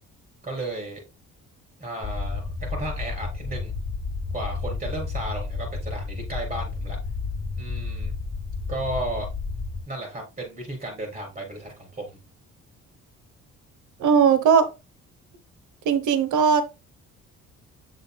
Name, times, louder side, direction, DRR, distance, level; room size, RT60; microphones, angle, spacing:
voice 1, 0.4-1.0 1.8-3.7 4.3-7.0 7.6-8.1 8.7-9.3 9.9-12.2, right 1 dB, 30° right, 1 dB, 3.8 m, -34 dB
sound 1, 2.0-9.8, left 4 dB, 35° left, 1.9 m, -31 dB
voice 2, 14.0-14.7 15.8-16.6, right 7 dB, 75° right, 11 dB, 1.0 m, -18 dB
6.9 x 6.8 x 2.2 m, 0.26 s
cardioid pair, 90°, 30 cm